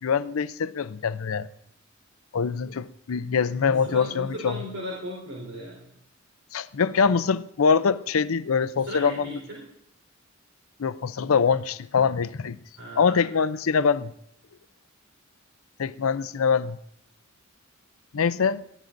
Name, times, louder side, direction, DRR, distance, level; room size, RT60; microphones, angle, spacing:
voice 1, 0.0-1.5 2.3-4.6 6.5-9.4 10.8-12.6 13.0-14.1 15.8-16.8 18.1-18.6, left 5 dB, 85° left, 0.5 m, -24 dB
voice 2, 3.7-5.8 8.7-9.6 12.8-13.3, equal, 80° right, 4.2 m, -37 dB
22.0 x 15.5 x 2.6 m
head